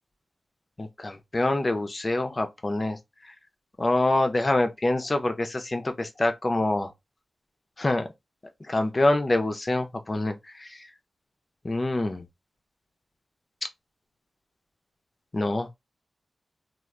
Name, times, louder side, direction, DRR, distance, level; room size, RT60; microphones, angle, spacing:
voice 1, 0.8-3.0 3.8-6.9 7.8-8.1 8.7-10.7 11.6-12.2 15.3-15.7, left 2 dB, 35° left, 0.6 m, -25 dB
3.2 x 2.4 x 2.4 m
wide cardioid pair, 75°, 0 cm